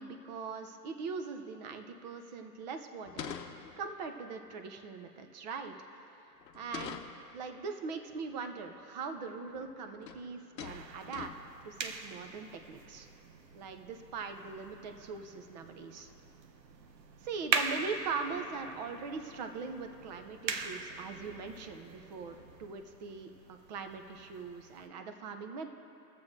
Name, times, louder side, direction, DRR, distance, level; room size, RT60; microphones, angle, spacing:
voice 1, 0.0-3.4 3.8-6.1 6.5-7.0 7.3-11.3 11.6-13.1 13.5-16.1 17.2-25.7, right 5 dB, 30° right, 7 dB, 0.5 m, -41 dB
sound 1, 3.0-4.1 6.4-7.4 9.0-9.1 9.5-9.8 10.0-10.3 10.6-11.6, left 8 dB, 80° left, 0.8 m, -44 dB
sound 2, 10.7-24.9, right 5 dB, 85° right, 0.8 m, -42 dB
21.5 x 7.4 x 2.6 m, 2.9 s
hypercardioid pair, 130°, 49 cm